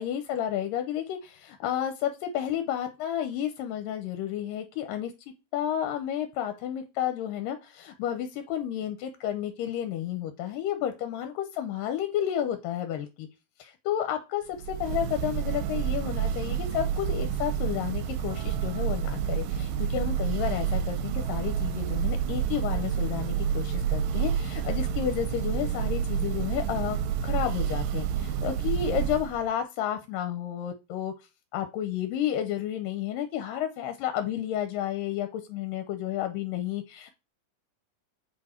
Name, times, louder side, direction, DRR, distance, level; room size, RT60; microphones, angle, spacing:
voice 1, 0.0-5.1 5.5-13.3 13.6-31.1 31.5-37.1, left 10 dB, 75° left, 7 dB, 2.2 m, -31 dB
Church bell, 14.5-29.5, right 8 dB, 75° right, 2.1 m, -29 dB
7.6 x 4.3 x 4.4 m, 0.27 s
omnidirectional pair, 4.4 m